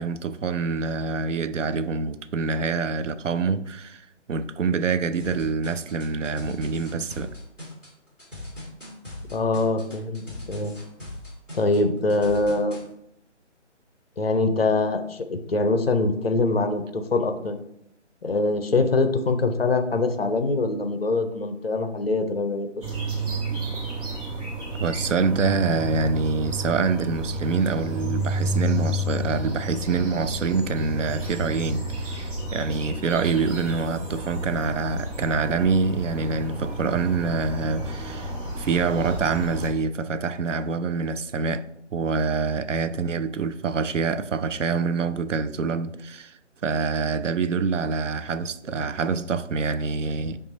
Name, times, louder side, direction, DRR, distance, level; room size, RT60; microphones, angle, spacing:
voice 1, 0.0-4.0 4.3-7.3 24.8-38.3 38.6-41.7 41.9-50.4, right 4 dB, 80° right, 0.5 m, -26 dB
sound 1, 5.2-12.8, left 1 dB, ahead, 1.3 m, -39 dB
voice 2, 9.3-10.7 11.5-12.8 14.2-17.6 18.2-22.7, left 3 dB, 55° left, 0.6 m, -23 dB
sound 2, 22.8-39.7, right 1 dB, 30° right, 1.3 m, -31 dB
5.3 x 2.4 x 4.1 m
figure-of-eight pair, 150°, 37 cm